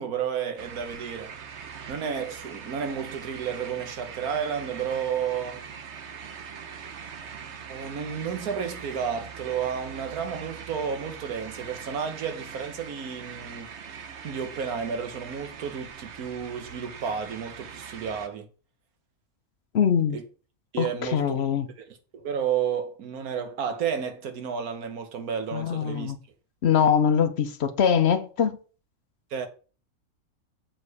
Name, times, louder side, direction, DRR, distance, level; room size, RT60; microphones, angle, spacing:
voice 1, 0.0-1.3 1.9-5.7 7.7-13.7 14.2-18.5 20.1-20.2 20.7-21.6 22.1-26.1 29.3-29.5, right 7 dB, 80° right, 1.6 m, -31 dB
sound 1, 0.6-18.3, right 7 dB, 55° right, 1.1 m, -42 dB
voice 2, 19.7-20.2 20.8-21.7 25.5-26.2 26.6-28.6, left 7 dB, 55° left, 0.9 m, -23 dB
7.5 x 4.8 x 4.8 m
omnidirectional pair, 1.5 m